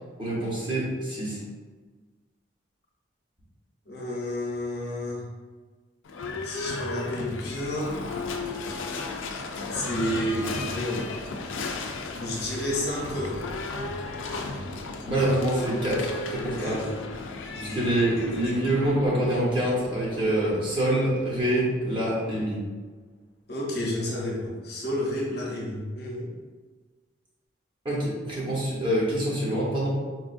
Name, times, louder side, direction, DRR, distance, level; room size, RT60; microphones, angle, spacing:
voice 1, 0.2-1.4 15.0-16.8 17.6-22.6 27.8-29.9, right 1 dB, 25° right, -6 dB, 0.9 m, -26 dB
voice 2, 3.9-5.2 6.4-7.9 9.7-11.0 12.1-13.4 16.6-16.8 17.5-18.6 23.5-26.3, left 1 dB, 55° left, -4 dB, 0.8 m, -31 dB
Livestock farm animals working animals / Bell, 6.0-21.9, left 3 dB, 85° left, 0.4 m, -35 dB
4.2 x 2.4 x 2.5 m, 1.4 s
head